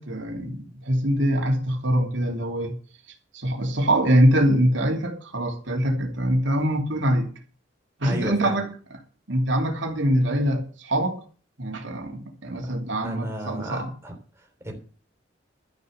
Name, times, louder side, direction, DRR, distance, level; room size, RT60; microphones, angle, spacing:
voice 1, 0.0-2.7 3.3-7.3 8.0-9.0 9.3-11.2 11.6-13.9, right 1 dB, 85° right, 3.0 m, -24 dB
voice 2, 8.0-8.6 12.6-12.7 13.0-14.8, right 1 dB, 15° right, 3.6 m, -34 dB
13.0 x 6.9 x 7.9 m
head